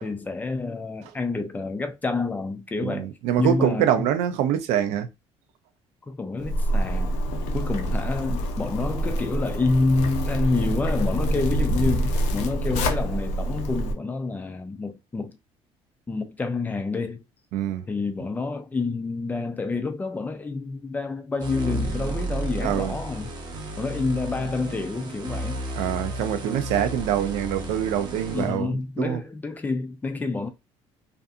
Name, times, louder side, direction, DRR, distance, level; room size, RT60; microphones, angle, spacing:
voice 1, 0.0-3.1 3.4-4.1 6.1-7.2 7.5-15.4 16.1-17.2 17.9-23.3 23.8-25.6 28.3-30.5, left 3 dB, 15° left, 0.4 m, -28 dB
voice 2, 2.8-5.1 17.5-17.8 22.6-22.9 25.8-29.2, right 10 dB, 90° right, 0.5 m, -25 dB
Zipper (clothing), 6.4-13.9, equal, 85° left, 0.6 m, -26 dB
sound 1, 21.4-28.6, right 1 dB, 40° right, 0.7 m, -32 dB
2.6 x 2.5 x 2.3 m
cardioid pair, 140°, 11 cm